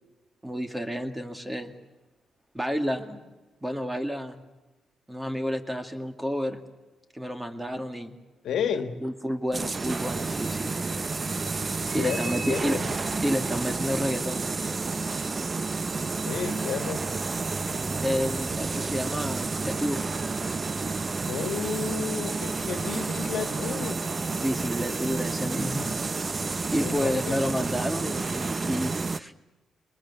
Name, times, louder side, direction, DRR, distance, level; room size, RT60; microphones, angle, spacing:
voice 1, 0.4-1.7 2.5-3.2 3.6-4.4 5.1-6.6 7.1-8.2 9.0-10.8 11.9-12.9 13.2-14.5 18.0-20.1 24.4-26.0 26.7-29.3, equal, 10° right, 6 dB, 2.2 m, -30 dB
voice 2, 8.4-9.0 11.9-12.8 16.3-17.1 21.3-24.0 26.7-27.4, left 7 dB, 75° left, 8 dB, 1.6 m, -32 dB
sound 1, 9.5-29.2, right 3 dB, 35° right, 0.7 m, -30 dB
22.0 x 20.5 x 8.3 m, 1.1 s
cardioid pair, 80°, 0 cm